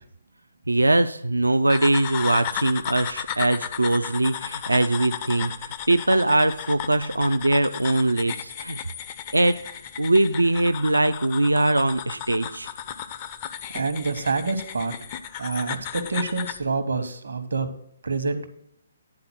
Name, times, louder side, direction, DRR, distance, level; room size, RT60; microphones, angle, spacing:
voice 1, 0.7-8.8 9.3-9.6 10.0-12.7, right 2 dB, 90° right, 10 dB, 0.3 m, -22 dB
sound 1, 1.7-16.6, left 9 dB, 35° left, 0.4 m, -34 dB
voice 2, 13.7-14.9 15.4-17.7 18.0-18.5, right 3 dB, 75° right, 10 dB, 0.9 m, -27 dB
9.7 x 3.9 x 6.0 m, 0.70 s
figure-of-eight pair, 140°, 0 cm